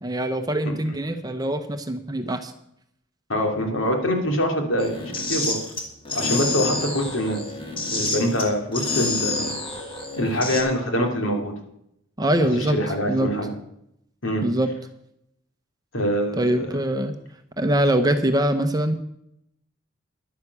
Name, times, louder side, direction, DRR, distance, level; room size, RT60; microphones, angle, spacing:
voice 1, 0.0-2.5 12.2-12.8 13.1-13.3 14.4-14.7 16.4-17.1 17.6-18.9, right 1 dB, 20° right, 8 dB, 0.8 m, -23 dB
voice 2, 3.3-5.6 6.1-7.4 7.9-9.6 10.1-11.6 12.6-13.5 14.2-14.4 15.9-16.7, equal, 75° left, 2 dB, 2.7 m, -24 dB
sound 1, 4.8-10.6, left 3 dB, 25° left, 2.1 m, -28 dB
11.0 x 9.4 x 6.9 m, 0.77 s
head